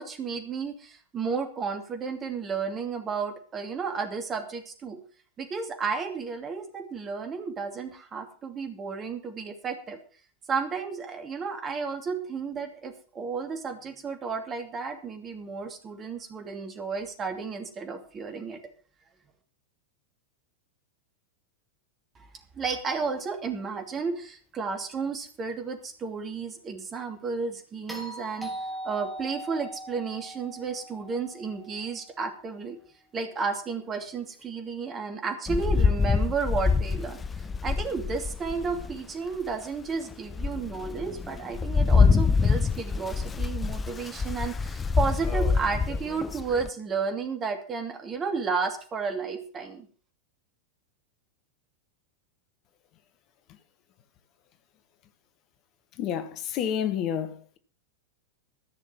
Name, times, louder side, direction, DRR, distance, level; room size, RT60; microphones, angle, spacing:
voice 1, 0.0-5.0 5.4-10.0 10.5-18.6 22.2-22.3 22.5-28.5 28.8-32.8 33.1-49.9, right 5 dB, 25° right, 2.7 m, -32 dB
sound 1, 27.9-32.2 34.4-34.5, right 1 dB, ahead, 2.9 m, -40 dB
Rain, 35.5-39.0 39.5-39.6 40.1-46.7, left 5 dB, 15° left, 0.5 m, -25 dB
voice 2, 56.0-57.6, left 9 dB, 35° left, 1.4 m, -29 dB
14.5 x 6.5 x 7.5 m
figure-of-eight pair, 90°, 0 cm